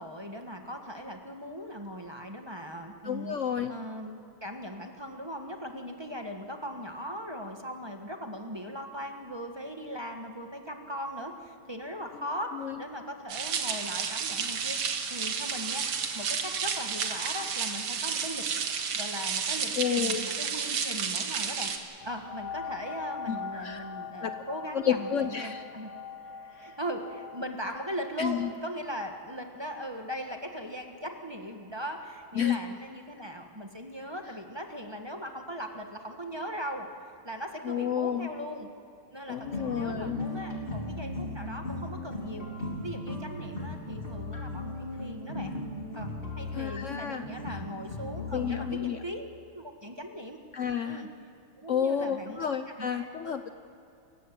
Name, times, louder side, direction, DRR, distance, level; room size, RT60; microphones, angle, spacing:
voice 1, 0.0-3.4 3.7-12.5 12.8-15.9 16.1-18.5 18.9-21.7 22.0-25.9 26.5-36.9 37.2-38.7 39.1-42.5 42.8-45.5 45.9-49.3 49.5-50.4 50.8-51.1 51.6-52.5 52.8-53.3, equal, 15° right, 4 dB, 1.3 m, -39 dB
voice 2, 3.0-3.7 12.5-12.8 19.8-20.2 23.3-23.8 24.2-24.3 24.7-25.6 26.4-26.8 28.2-28.5 32.3-32.6 37.6-38.3 39.3-40.2 46.5-47.6 48.3-49.0 50.5-51.0 51.7-53.5, left 8 dB, 85° left, 8 dB, 0.6 m, -31 dB
sound 1, 13.3-21.8, right 6 dB, 85° right, 2.4 m, -31 dB
sound 2, 22.0-31.3 31.9-32.0, left 5 dB, 60° left, 1.4 m, -43 dB
sound 3, 39.4-48.7, left 2 dB, 25° left, 3.2 m, -37 dB
28.5 x 15.0 x 7.7 m, 2.6 s
omnidirectional pair, 2.3 m